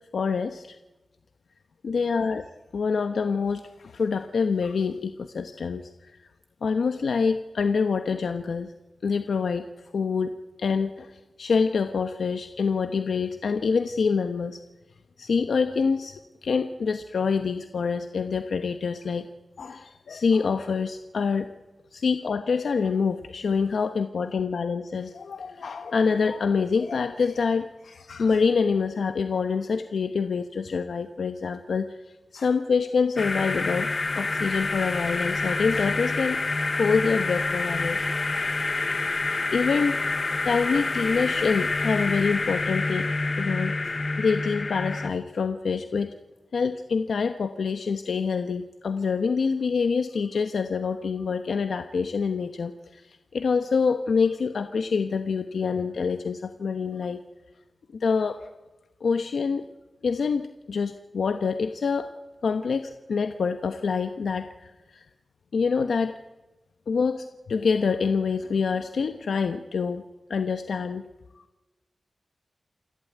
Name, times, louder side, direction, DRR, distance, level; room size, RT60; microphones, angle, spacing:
voice 1, 0.1-0.8 1.8-2.5 2.7-6.2 6.6-8.7 9.0-10.3 10.6-14.6 15.2-19.3 19.6-21.5 21.9-32.0 32.3-33.9 34.1-36.4 36.8-38.0 38.4-38.6 39.5-40.0 40.4-43.1 43.4-43.8 44.2-46.1 46.5-57.2 57.9-58.4 59.0-59.7 60.0-62.1 62.4-65.0 65.5-66.1 66.9-70.0 70.3-71.0, left 5 dB, 90° left, 8 dB, 1.0 m, -26 dB
sound 1, 33.2-45.1, left 3 dB, 35° left, 1.0 m, -27 dB
28.0 x 12.5 x 9.4 m, 1.1 s
wide cardioid pair, 140°, 0 cm